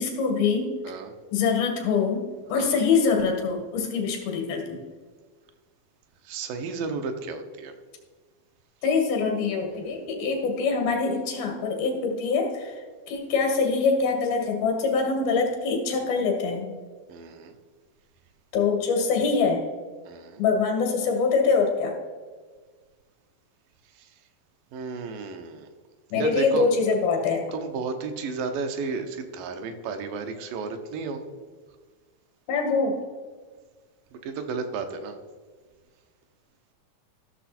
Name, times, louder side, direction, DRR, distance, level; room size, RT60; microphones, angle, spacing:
voice 1, 0.0-0.7 1.3-4.8 8.8-12.8 13.1-16.7 18.5-19.6 20.4-22.0 26.1-27.4 32.5-33.0, left 4 dB, 85° left, 2 dB, 3.6 m, -24 dB
voice 2, 6.2-7.7 17.1-17.5 20.1-20.4 24.0-24.1 24.7-25.7 26.2-26.7 27.5-31.2 34.1-35.1, right 4 dB, 75° right, 7 dB, 2.5 m, -33 dB
14.0 x 6.7 x 4.3 m, 1.5 s
omnidirectional pair, 4.1 m